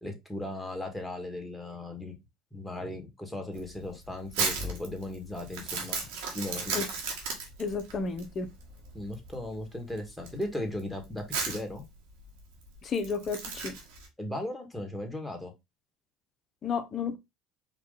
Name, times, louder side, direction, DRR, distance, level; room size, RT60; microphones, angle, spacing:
voice 1, 0.0-2.1 2.5-6.0 6.3-6.8 8.9-11.8 14.2-15.5, left 1 dB, 5° left, 1.7 m, -37 dB
Crumpling crinkling, 3.5-14.1, right 4 dB, 85° right, 1.7 m, -36 dB
voice 2, 7.6-8.5 12.8-13.8 16.6-17.2, left 5 dB, 40° left, 0.9 m, -32 dB
4.9 x 2.5 x 3.9 m
supercardioid pair, 100°, 0 cm